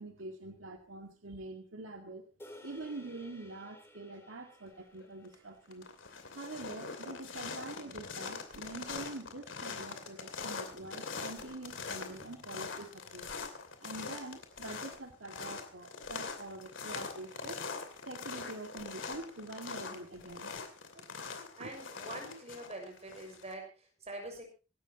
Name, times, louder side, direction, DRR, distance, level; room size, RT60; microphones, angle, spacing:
voice 1, 0.0-2.3 2.6-5.9 6.3-17.6 18.1-20.5 20.9-21.1 21.6-21.7, right 2 dB, 90° right, 4 dB, 2.0 m, -45 dB
sound 1, 2.4-6.9, left 1 dB, 15° left, 3.3 m, -56 dB
sound 2, 5.0-5.3 5.7-23.5, left 4 dB, 75° left, 2.7 m, -43 dB
voice 2, 21.3-24.4, right 2 dB, 35° right, 3 dB, 6.1 m, -45 dB
25.5 x 12.5 x 2.9 m, 0.33 s
head